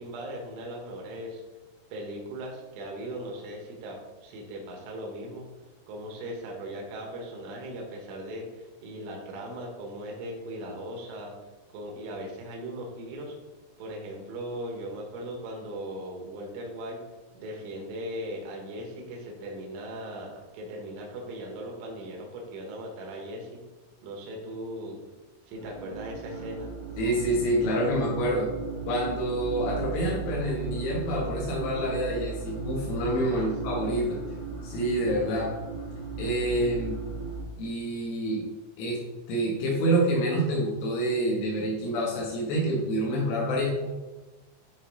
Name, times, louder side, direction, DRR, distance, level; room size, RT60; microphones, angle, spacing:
voice 1, 0.0-1.4 1.9-5.5 5.9-11.3 11.7-13.4 13.8-17.0 17.3-23.6 24.0-25.0 25.5-26.7 33.3-33.5, right 1 dB, 75° right, 0 dB, 3.4 m, -38 dB
sound 1, 25.5-37.4, right 5 dB, 40° left, 1.6 m, -37 dB
voice 2, 27.0-28.5 28.9-34.2 34.6-35.5 36.2-37.0 37.6-38.4 38.8-39.0 39.3-43.9, right 1 dB, 75° left, -4 dB, 3.6 m, -27 dB
10.0 x 4.0 x 3.8 m, 1.2 s
omnidirectional pair, 5.9 m